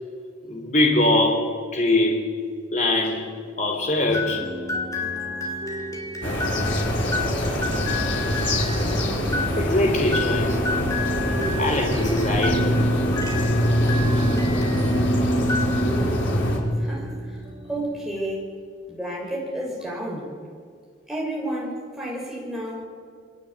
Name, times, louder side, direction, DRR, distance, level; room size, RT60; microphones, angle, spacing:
voice 1, 0.4-2.2 2.7-4.4 9.6-10.6 11.6-12.8, left 2 dB, 40° left, 2 dB, 3.4 m, -22 dB
sound 1, 4.1-15.0 15.4-16.2, left 3 dB, 20° left, 3.5 m, -32 dB
sound 2, 4.1-18.2, right 1 dB, 25° right, 2.3 m, -38 dB
sound 3, 6.2-16.6, equal, 75° left, 5.4 m, -23 dB
voice 2, 16.8-17.4 17.7-18.5 18.9-20.3 21.1-22.8, right 1 dB, ahead, -3 dB, 6.8 m, -31 dB
28.5 x 21.0 x 8.7 m, 2.1 s
head